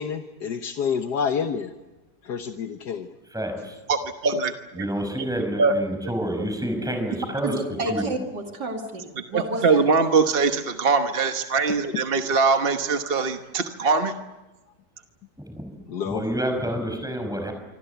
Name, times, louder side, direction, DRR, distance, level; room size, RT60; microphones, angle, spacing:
voice 1, 0.0-1.7 2.2-3.1 15.9-16.2, left 7 dB, 75° left, 6 dB, 1.7 m, -28 dB
voice 2, 3.3-3.8 4.8-7.6 7.9-8.0 15.4-15.7 16.0-17.5, equal, ahead, 4 dB, 5.7 m, -28 dB
voice 3, 3.9-4.9 5.6-5.7 9.3-14.1, right 4 dB, 40° right, 6 dB, 1.2 m, -22 dB
voice 4, 7.4-9.8, right 2 dB, 80° right, 2 dB, 3.1 m, -30 dB
26.5 x 25.5 x 8.1 m, 1.1 s
omnidirectional pair, 1.8 m